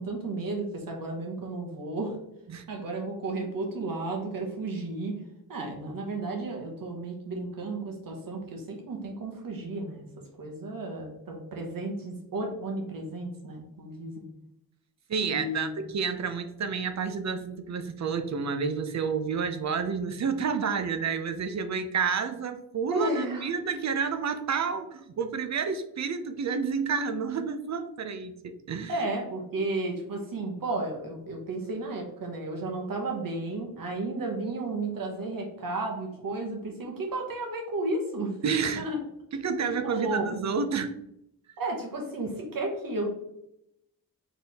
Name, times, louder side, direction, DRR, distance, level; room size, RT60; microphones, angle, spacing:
voice 1, 0.0-2.1 2.7-5.1 5.5-10.0 10.4-14.2 15.3-15.7 22.9-23.5 28.9-38.3 38.8-39.0 39.8-40.3 41.6-43.1, right 2 dB, 70° right, 1 dB, 1.2 m, -33 dB
voice 2, 15.1-28.9 38.4-38.9 39.3-40.9, right 5 dB, 50° right, 8 dB, 0.5 m, -30 dB
4.2 x 3.6 x 3.5 m, 0.79 s
wide cardioid pair, 110°, 36 cm